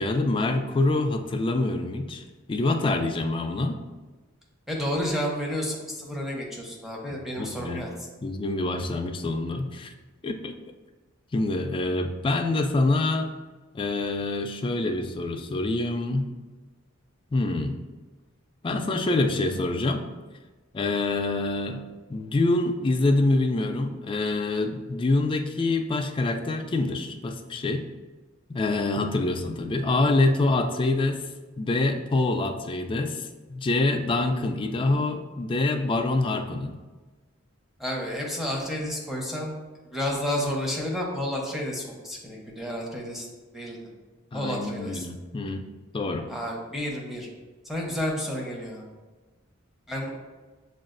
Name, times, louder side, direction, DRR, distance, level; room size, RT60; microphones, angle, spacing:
voice 1, 0.0-2.2 2.5-3.8 7.4-7.8 8.2-9.9 10.2-10.5 11.3-13.3 13.7-16.3 17.3-17.8 18.6-20.1 20.7-21.8 22.1-27.8 28.5-31.2 31.6-36.8 44.3-45.6 45.9-46.3, left 2 dB, 25° left, 5 dB, 0.3 m, -26 dB
voice 2, 4.7-7.9 37.8-39.6 39.9-43.3 43.5-43.8 44.3-45.0 46.3-47.3 47.7-48.8 49.9-50.1, equal, ahead, -2 dB, 0.7 m, -31 dB
6.8 x 2.3 x 2.5 m, 1.3 s
head